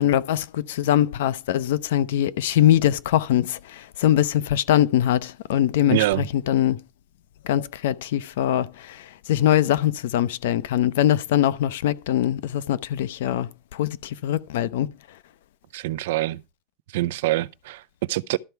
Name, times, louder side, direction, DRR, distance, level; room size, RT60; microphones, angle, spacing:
voice 1, 0.0-6.8 7.4-14.9, left 12 dB, 75° left, 0.7 m, -22 dB
voice 2, 5.9-6.3 15.7-16.4 16.9-18.4, right 17 dB, 70° right, 0.6 m, -25 dB
12.5 x 4.6 x 6.8 m
supercardioid pair, 165°, 0 cm